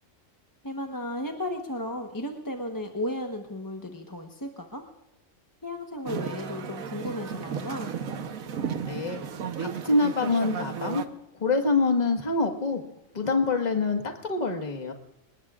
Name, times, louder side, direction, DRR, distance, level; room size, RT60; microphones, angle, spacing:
voice 1, 0.6-4.8 5.6-7.9, left 1 dB, 15° left, 3 dB, 1.0 m, -34 dB
sound 1, 6.1-11.1, right 7 dB, 80° right, 1.5 m, -34 dB
voice 2, 8.9-9.2 9.6-11.0 11.4-12.8 13.1-14.9, left 3 dB, 30° left, 4 dB, 1.6 m, -25 dB
26.0 x 20.5 x 2.5 m, 0.93 s
omnidirectional pair, 1.4 m